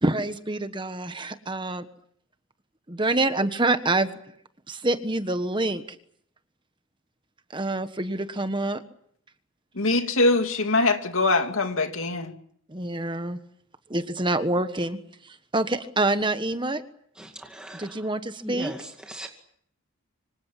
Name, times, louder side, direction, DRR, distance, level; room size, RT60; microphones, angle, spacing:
voice 1, 0.0-1.9 2.9-4.1 4.7-5.8 7.5-8.8 12.7-13.4 13.9-15.0 15.2-16.8 17.7-18.7, right 2 dB, 20° right, 1.3 m, -26 dB
voice 2, 9.8-12.3, left 2 dB, 70° left, 2.8 m, -23 dB
voice 3, 17.2-17.9 18.4-19.3, right 1 dB, 5° right, 2.3 m, -38 dB
26.0 x 26.0 x 7.5 m
head